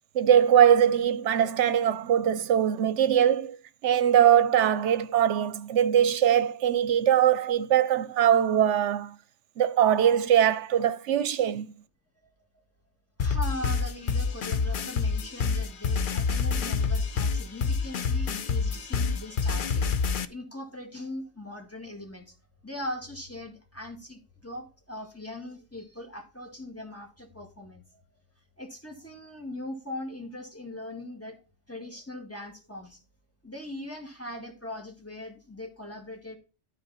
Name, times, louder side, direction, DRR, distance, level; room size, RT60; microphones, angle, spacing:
voice 1, 0.1-3.6 3.8-9.1 9.6-11.7, right 9 dB, 80° right, 0.9 m, -22 dB
sound 1, 13.2-20.2, left 5 dB, 50° left, 0.8 m, -27 dB
voice 2, 13.2-22.3 22.6-28.0 28.6-31.4 31.7-33.0 33.4-36.4, left 1 dB, 10° left, 1.8 m, -40 dB
12.5 x 4.6 x 4.1 m
omnidirectional pair, 1.2 m